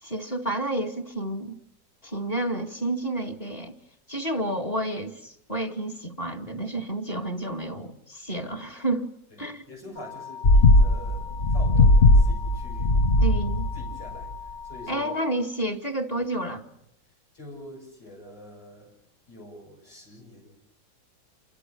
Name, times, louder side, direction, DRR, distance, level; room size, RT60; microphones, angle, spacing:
voice 1, 0.0-1.6 2.0-3.8 4.1-9.1 9.4-9.6 13.2-13.7 14.9-16.6, right 1 dB, 20° left, 2.3 m, -30 dB
voice 2, 9.3-13.0 13.7-15.1 17.3-18.9 19.3-20.6, left 1 dB, 75° left, 8.3 m, -45 dB
sound 1, 10.0-15.3, left 7 dB, 5° left, 0.8 m, -40 dB
sound 2, 10.4-13.9 14.2-14.3, left 2 dB, 40° left, 1.1 m, -18 dB
29.0 x 24.0 x 6.6 m
omnidirectional pair, 1.9 m